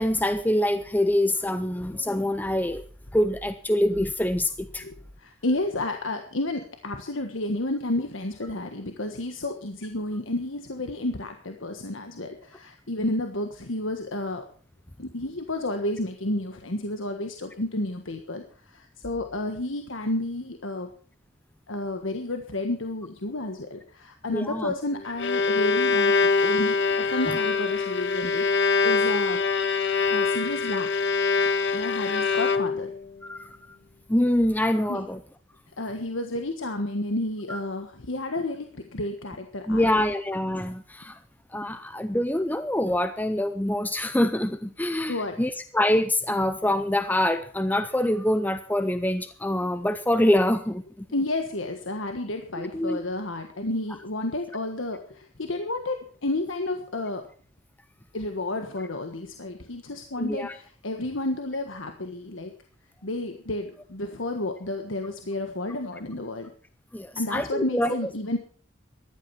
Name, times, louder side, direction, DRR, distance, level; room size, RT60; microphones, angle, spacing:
voice 1, 0.0-2.8 3.1-4.8 24.3-24.7 33.2-33.6 34.1-35.2 37.5-37.6 39.7-41.2 41.5-51.1 52.6-53.0 60.2-60.5 66.9-68.0, left 1 dB, 10° left, 10 dB, 0.6 m, -25 dB
voice 2, 4.8-14.4 15.0-20.9 21.7-29.4 30.1-30.9 31.7-32.9 34.9-35.1 35.8-39.9 45.1-45.4 51.1-57.2 58.1-62.6 63.0-66.5 67.2-68.4, left 2 dB, 75° left, 6 dB, 1.4 m, -31 dB
Bowed string instrument, 24.9-33.0, left 4 dB, 55° left, 0.9 m, -24 dB
14.5 x 11.5 x 5.8 m, 0.44 s
head